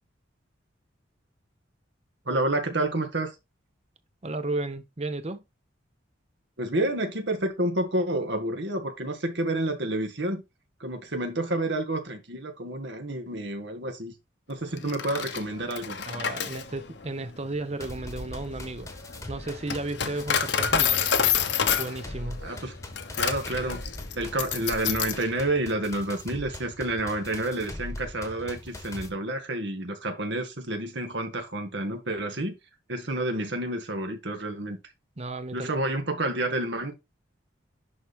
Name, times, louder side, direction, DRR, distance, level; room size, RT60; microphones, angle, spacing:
voice 1, 2.3-3.3 6.6-10.4 10.8-14.1 14.5-16.1 22.4-22.8 23.2-23.8 24.2-32.5 32.9-34.8 35.5-36.9, right 1 dB, 65° right, 1.9 m, -29 dB
voice 2, 4.2-5.4 16.1-18.9 19.3-21.0 21.8-22.4 35.2-35.9, right 2 dB, 35° right, 0.8 m, -34 dB
Coin (dropping), 14.8-25.3, left 7 dB, 65° left, 0.9 m, -29 dB
sound 1, 17.8-29.1, left 1 dB, 15° left, 1.2 m, -41 dB
11.0 x 4.4 x 3.5 m
head